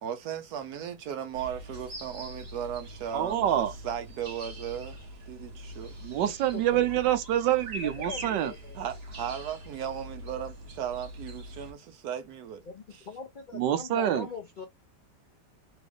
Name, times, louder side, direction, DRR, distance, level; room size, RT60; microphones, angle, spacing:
voice 1, 0.0-5.9 6.3-6.4 8.7-12.6, right 9 dB, 65° right, 1.2 m, -36 dB
sound 1, 1.3-11.7, right 1 dB, 40° right, 1.2 m, -43 dB
voice 2, 3.1-3.7 6.0-8.5 13.5-14.3, right 11 dB, 85° right, 1.3 m, -26 dB
voice 3, 8.0-8.8 12.7-14.7, left 5 dB, 75° left, 0.4 m, -41 dB
3.6 x 2.4 x 3.4 m
omnidirectional pair, 1.9 m